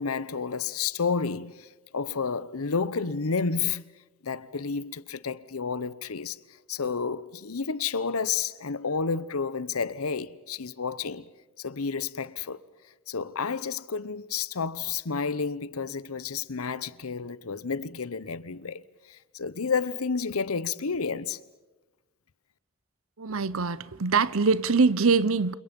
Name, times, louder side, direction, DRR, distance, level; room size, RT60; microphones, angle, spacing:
voice 1, 0.0-3.8 4.2-6.4 6.7-11.2 11.6-12.6 13.1-18.8 19.1-21.4, left 5 dB, 85° left, 0.9 m, -30 dB
voice 2, 23.2-25.5, right 4 dB, 70° right, 0.9 m, -23 dB
29.5 x 27.5 x 5.3 m
head